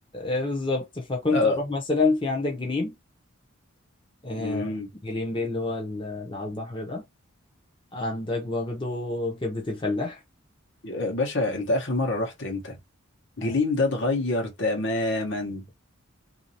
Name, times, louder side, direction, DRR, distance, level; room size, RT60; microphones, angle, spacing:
voice 1, 0.1-2.9 4.2-4.7 5.0-7.0 7.9-10.2 13.4-13.5, left 3 dB, 25° left, 0.8 m, -28 dB
voice 2, 4.4-4.9 10.8-12.8 13.4-15.6, left 2 dB, 55° left, 1.1 m, -26 dB
3.9 x 2.8 x 2.8 m
head